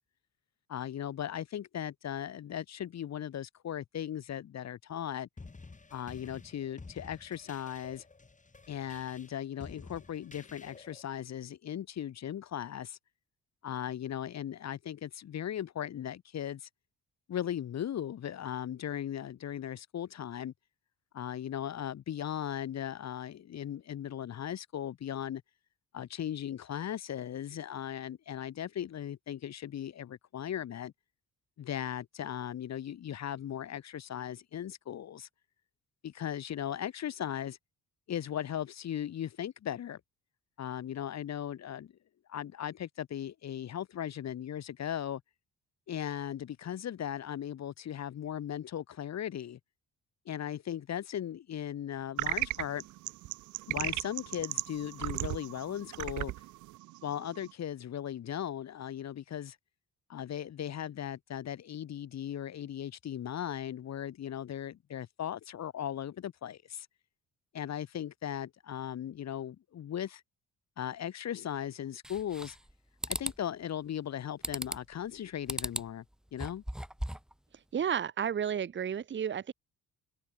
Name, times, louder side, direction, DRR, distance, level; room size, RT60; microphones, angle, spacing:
voice 1, 0.7-5.3 5.9-8.0 8.7-13.0 13.6-16.7 17.3-20.5 21.1-25.4 25.9-30.9 31.6-35.3 36.0-37.6 38.1-40.0 40.6-41.9 42.3-45.2 45.9-49.6 50.3-52.8 53.7-56.3 57.0-59.6 60.1-66.9 67.5-70.2 70.8-72.6 73.1-76.0 76.3-76.6, left 10 dB, 60° left, 2.3 m, -38 dB
sound 1, 5.4-11.0, left 3 dB, 25° left, 7.5 m, -51 dB
sound 2, 52.2-57.5, right 18 dB, 75° right, 0.5 m, -36 dB
sound 3, 72.0-72.7 73.0-73.4 74.4-74.9 75.5-75.9 76.3-77.3, equal, ahead, 1.4 m, -37 dB
voice 2, 77.7-79.5, right 8 dB, 40° right, 1.0 m, -32 dB
open air
cardioid pair, 90°, 30 cm